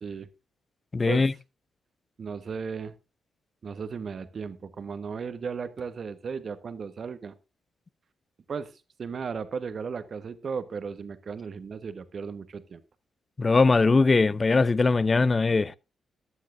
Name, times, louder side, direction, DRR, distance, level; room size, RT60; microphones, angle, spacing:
voice 1, 0.9-1.3 13.4-15.8, left 3 dB, 35° left, 0.6 m, -21 dB
voice 2, 2.2-2.9 3.6-7.3 8.5-8.7 9.0-12.8, right 5 dB, 50° right, 1.2 m, -35 dB
14.5 x 11.5 x 2.6 m
hypercardioid pair, 40°, 0 cm